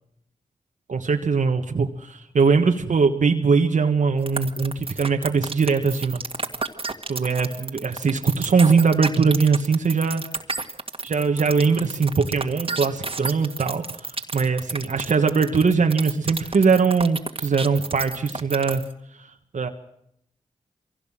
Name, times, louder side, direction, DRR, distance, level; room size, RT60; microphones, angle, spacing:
voice 1, 0.9-6.2 7.1-10.3 11.0-13.8 14.3-18.8 19.5-19.7, right 5 dB, 65° right, 4 dB, 1.5 m, -21 dB
sound 1, 4.3-18.9, right 3 dB, 40° right, 1.9 m, -31 dB
22.5 x 16.5 x 7.6 m, 0.75 s
cardioid pair, 40°, 14 cm